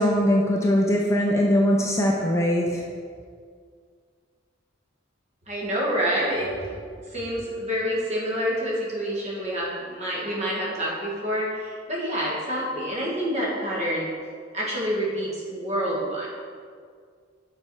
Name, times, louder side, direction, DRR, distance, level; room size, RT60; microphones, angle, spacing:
voice 1, 0.0-2.8, equal, 15° left, -1 dB, 0.4 m, -21 dB
voice 2, 5.5-6.8 7.1-14.1 14.5-16.3, equal, 35° right, -5 dB, 1.5 m, -27 dB
6.8 x 4.3 x 4.6 m, 2.1 s
head